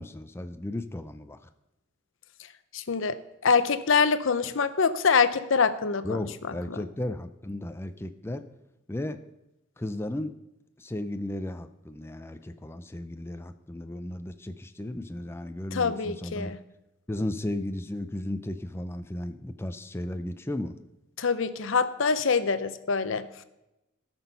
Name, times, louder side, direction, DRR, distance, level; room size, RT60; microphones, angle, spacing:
voice 1, 0.0-1.5 6.0-8.5 8.9-9.2 9.8-10.3 10.8-16.6 17.1-20.7, left 1 dB, 10° left, 9 dB, 0.4 m, -35 dB
voice 2, 2.7-3.2 3.4-6.2 6.7-6.8 15.7-16.6 21.2-23.3, left 5 dB, 70° left, 12 dB, 0.6 m, -25 dB
13.5 x 6.1 x 5.5 m, 0.92 s
head